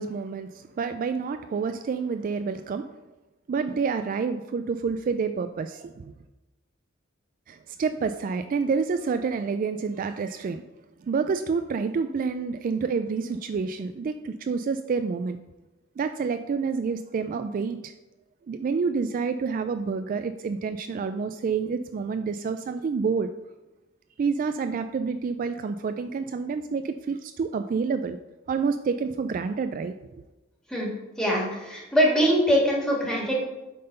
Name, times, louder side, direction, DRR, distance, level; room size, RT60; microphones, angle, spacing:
voice 1, 0.0-2.9 3.5-6.1 7.5-10.6 11.1-15.4 16.0-17.9 18.5-23.3 24.2-28.2 28.5-30.2, right 5 dB, 45° right, 9 dB, 0.3 m, -28 dB
voice 2, 31.2-33.3, equal, 5° left, -3 dB, 1.8 m, -23 dB
7.7 x 3.8 x 5.4 m, 1.1 s
head